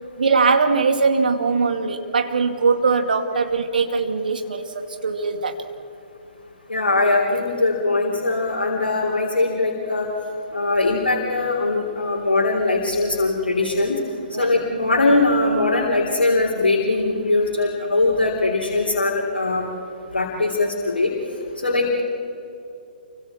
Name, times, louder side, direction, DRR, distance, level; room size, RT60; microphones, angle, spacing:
voice 1, 0.2-5.6 14.3-14.5, right 4 dB, 60° right, 6 dB, 2.1 m, -21 dB
voice 2, 6.7-10.1 10.5-14.0 14.4-19.7 20.1-21.1 21.6-22.0, left 2 dB, 70° left, -2 dB, 3.7 m, -21 dB
29.0 x 24.5 x 4.5 m, 2.8 s
figure-of-eight pair, 125°, 5 cm